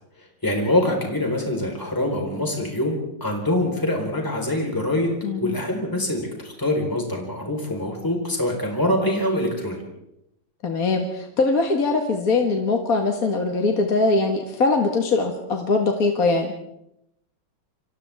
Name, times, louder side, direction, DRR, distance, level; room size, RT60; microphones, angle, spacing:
voice 1, 0.4-9.8, left 1 dB, 10° left, 0 dB, 4.3 m, -24 dB
voice 2, 5.2-5.5 10.6-16.5, left 3 dB, 45° left, 3 dB, 2.0 m, -22 dB
29.5 x 25.5 x 3.6 m, 0.81 s
omnidirectional pair, 2.3 m